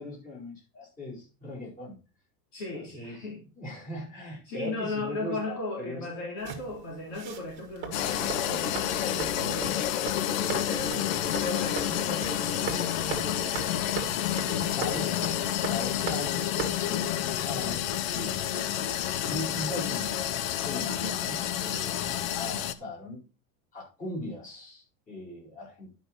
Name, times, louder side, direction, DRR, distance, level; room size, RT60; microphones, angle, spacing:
voice 1, 0.0-2.0 2.7-3.2 3.5-6.0 14.3-15.2 15.5-17.9 18.1-18.4 19.2-23.2 23.7-25.9, left 1 dB, 20° left, -4 dB, 4.6 m, -39 dB
voice 2, 2.5-3.4 4.1-9.9 10.2-13.5 14.4-14.8, left 2 dB, 40° left, -2 dB, 3.4 m, -37 dB
sound 1, 6.4-18.0, right 8 dB, 25° right, 1.9 m, -41 dB
sound 2, 7.9-22.7, left 11 dB, 65° left, 1.0 m, -29 dB
11.5 x 5.9 x 4.2 m, 0.32 s
supercardioid pair, 170°, 43 cm